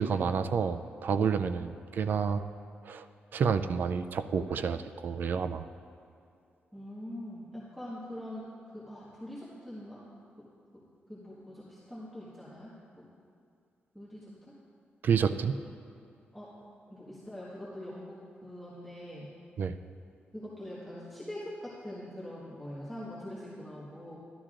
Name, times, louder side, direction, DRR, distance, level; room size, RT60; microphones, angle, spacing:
voice 1, 0.0-2.4 2.8-3.0 3.3-5.7 15.0-15.5 19.6-19.8, right 6 dB, 55° right, 10 dB, 0.4 m, -29 dB
voice 2, 6.7-8.4 8.7-10.0 11.1-12.7 13.9-14.2 16.3-16.5 16.9-18.2 18.4-19.3 20.3-24.2, left 1 dB, ahead, -11 dB, 1.5 m, -43 dB
12.5 x 12.0 x 2.5 m, 2.5 s
wide cardioid pair, 165°, 4 cm